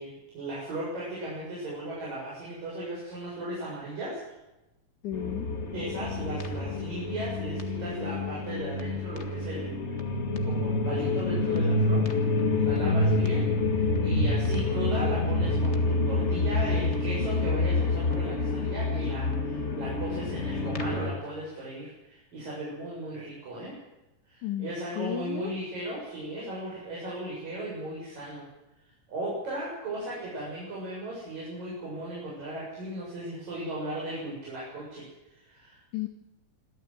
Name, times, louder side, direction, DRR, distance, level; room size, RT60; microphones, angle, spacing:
voice 1, 0.0-4.2 5.7-9.9 10.2-23.8 24.3-28.4 29.1-35.8, right 1 dB, 85° right, -5 dB, 9.0 m, -37 dB
voice 2, 5.0-5.5 12.8-13.2 24.4-24.7 25.0-25.5 35.9-36.1, left 12 dB, 70° left, 4 dB, 2.8 m, -33 dB
sound 1, 5.1-21.1, left 2 dB, 30° left, 1.3 m, -27 dB
26.5 x 13.5 x 7.9 m, 0.95 s
omnidirectional pair, 3.8 m